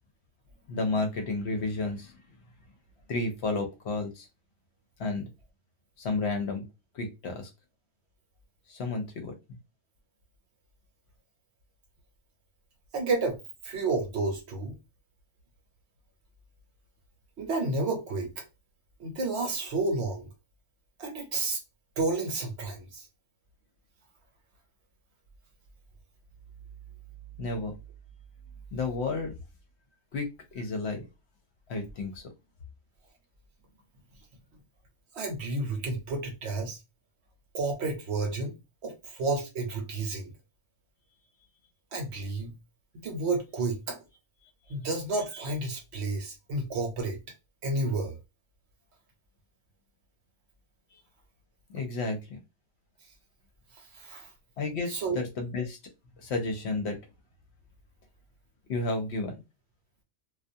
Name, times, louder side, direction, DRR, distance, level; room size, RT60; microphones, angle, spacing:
voice 1, 0.7-2.1 3.1-4.3 5.0-5.3 6.0-6.6 6.9-7.5 8.7-9.3 27.4-27.7 28.7-29.3 30.1-31.0 31.7-32.2 51.7-52.4 54.6-55.8 56.2-57.0 58.7-59.4, left 3 dB, 65° left, 0.8 m, -31 dB
voice 2, 12.9-13.4 13.6-14.7 17.4-18.4 19.0-20.3 21.0-21.6 22.0-23.1 35.1-36.8 37.5-38.6 38.8-40.3 41.9-42.5 42.9-44.0 44.7-47.2 47.6-48.2 53.9-54.3 54.9-55.2, right 3 dB, 60° right, 0.9 m, -31 dB
2.4 x 2.2 x 2.6 m
omnidirectional pair, 1.3 m